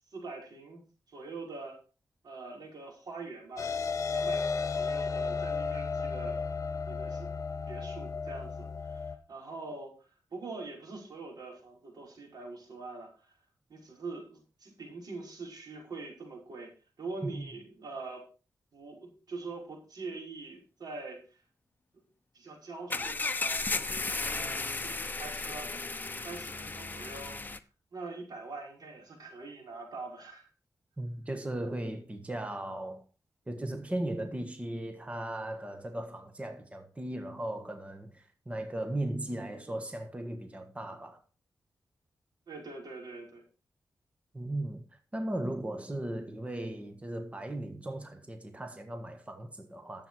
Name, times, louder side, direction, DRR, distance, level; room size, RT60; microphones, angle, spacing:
voice 1, 0.1-0.8 1.1-1.8 2.2-3.7 4.1-6.4 6.8-7.3 7.7-13.3 13.7-16.7 17.0-18.2 18.7-21.4 22.3-25.7 26.2-27.4 27.9-30.5 42.5-43.4, right 3 dB, 80° right, 5.2 m, -44 dB
sound 1, 3.6-9.2, left 5 dB, 50° left, 1.3 m, -33 dB
sound 2, 22.9-27.6, left 3 dB, 30° left, 0.9 m, -34 dB
voice 2, 31.0-33.0 33.5-41.2 44.3-44.8 45.1-50.1, right 1 dB, 20° right, 1.5 m, -37 dB
12.0 x 7.9 x 4.8 m
wide cardioid pair, 90°, 7 cm